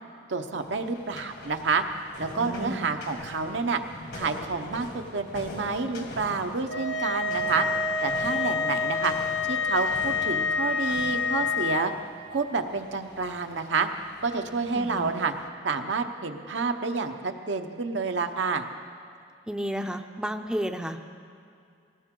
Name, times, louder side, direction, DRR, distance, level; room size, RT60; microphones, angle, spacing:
voice 1, 0.3-1.8 2.2-3.8 4.1-7.7 8.0-9.1 9.5-11.9 12.3-13.9 14.2-15.3 15.6-18.6, right 4 dB, 90° right, 5 dB, 0.9 m, -29 dB
sound 1, 0.6-15.5, left 1 dB, 70° left, 1.9 m, -44 dB
voice 2, 2.4-2.9 14.8-15.1 19.5-21.1, equal, 5° right, 5 dB, 0.5 m, -32 dB
sound 2, 6.7-11.8, left 4 dB, 90° left, 0.9 m, -27 dB
19.0 x 18.0 x 3.8 m, 2.4 s
head